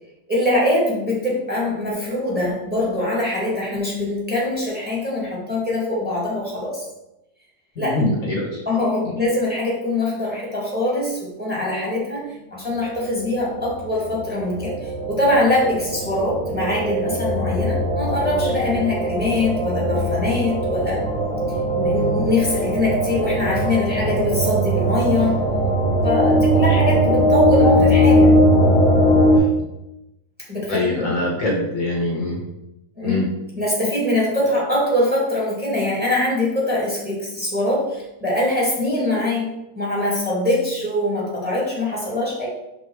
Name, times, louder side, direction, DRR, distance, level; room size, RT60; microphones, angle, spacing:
voice 1, 0.3-6.8 7.8-8.0 8.6-21.1 21.8-25.4 26.0-28.4 29.4-29.5 30.5-30.9 31.4-31.5 33.0-33.2 33.6-39.5 39.7-42.5, left 1 dB, 5° right, -4 dB, 1.8 m, -23 dB
voice 2, 7.8-8.6 29.6-29.7 30.7-32.4 33.0-33.2, left 2 dB, 60° left, -1 dB, 1.5 m, -23 dB
sound 1, 13.2-29.4, equal, 25° right, 0.9 m, -20 dB
5.3 x 3.9 x 4.7 m, 0.91 s
omnidirectional pair, 1.7 m